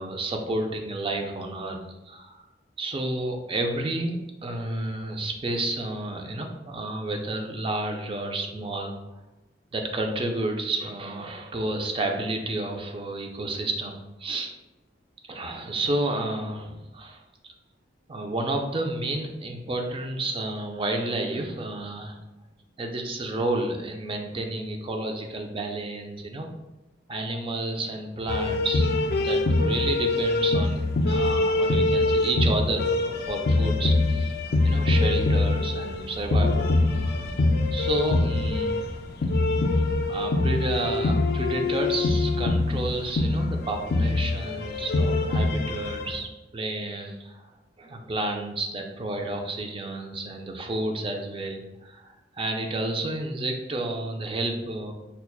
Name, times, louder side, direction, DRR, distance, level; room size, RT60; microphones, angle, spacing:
voice 1, 0.0-2.4 2.8-8.9 9.7-14.5 15.2-17.2 18.1-22.2 22.8-26.5 27.1-34.3 34.6-36.7 37.7-39.1 40.1-46.3 46.5-47.5 47.8-54.9, right 2 dB, 30° right, 3 dB, 0.4 m, -31 dB
sound 1, 28.3-46.2, left 2 dB, 55° left, 0.4 m, -24 dB
5.6 x 2.2 x 2.3 m, 1.0 s
head